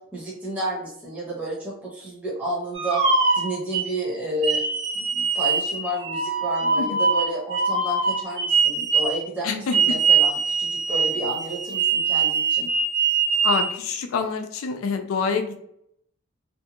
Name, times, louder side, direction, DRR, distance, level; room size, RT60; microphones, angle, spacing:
voice 1, 0.1-3.0 3.3-4.6 5.0-12.7, right 1 dB, 5° right, -6 dB, 0.7 m, -31 dB
sound 1, 2.7-3.9 4.4-9.2 9.7-13.7, right 5 dB, 60° right, 1.3 m, -23 dB
voice 2, 9.4-10.0 13.4-15.6, left 5 dB, 85° left, 6 dB, 0.4 m, -26 dB
2.6 x 2.2 x 2.8 m, 0.72 s
head